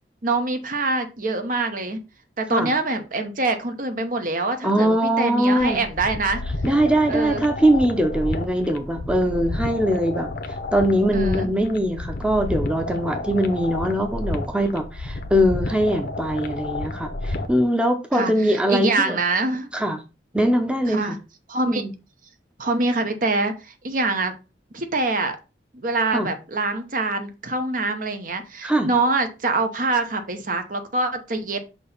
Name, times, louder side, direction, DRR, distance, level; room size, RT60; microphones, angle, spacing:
voice 1, 0.2-2.0 2.4-6.4 7.1-7.4 11.1-11.5 18.1-19.7 20.9-21.2 21.5-21.8 22.6-24.3 24.7-25.4 25.7-31.6, right 3 dB, 50° right, 7 dB, 0.8 m, -24 dB
voice 2, 4.6-5.8 6.6-10.3 10.7-19.2 19.7-20.0 20.3-21.2 21.7-21.9 26.1-26.3 28.6-28.9, equal, 5° right, 5 dB, 0.7 m, -21 dB
sound 1, 5.6-17.6, left 2 dB, 55° left, 0.7 m, -31 dB
6.2 x 2.9 x 5.5 m, 0.30 s
head